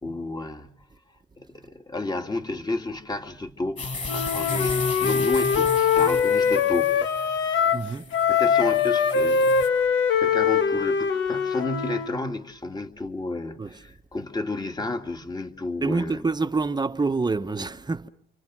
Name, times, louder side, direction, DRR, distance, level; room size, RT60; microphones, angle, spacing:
voice 1, 0.0-0.7 1.4-7.1 8.3-9.7 10.2-16.3, left 2 dB, 20° left, 2.1 m, -32 dB
sound 1, 3.8-9.7, left 3 dB, 35° left, 6.3 m, -33 dB
Wind instrument woodwind instrument, 4.0-7.9 8.1-12.1, left 6 dB, 70° left, 1.6 m, -22 dB
voice 2, 7.6-8.0 13.6-13.7 15.8-18.1, right 3 dB, 20° right, 1.2 m, -26 dB
29.0 x 25.5 x 6.2 m
cardioid pair, 90°, 20 cm